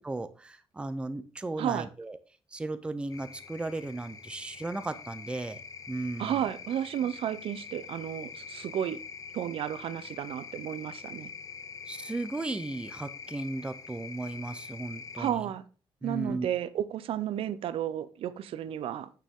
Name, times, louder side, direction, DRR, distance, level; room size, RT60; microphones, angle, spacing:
voice 1, 0.0-2.2 2.5-5.6 5.9-6.4 11.9-15.5 16.0-16.5, right 2 dB, 10° right, 11 dB, 0.5 m, -35 dB
voice 2, 1.6-1.9 6.2-9.0 9.3-11.3 15.2-15.6 16.0-19.1, right 10 dB, 65° right, 15 dB, 0.6 m, -32 dB
sound 1, 3.1-15.3, left 6 dB, 35° left, 0.7 m, -45 dB
9.0 x 6.8 x 3.6 m, 0.35 s
cardioid pair, 160°, 10 cm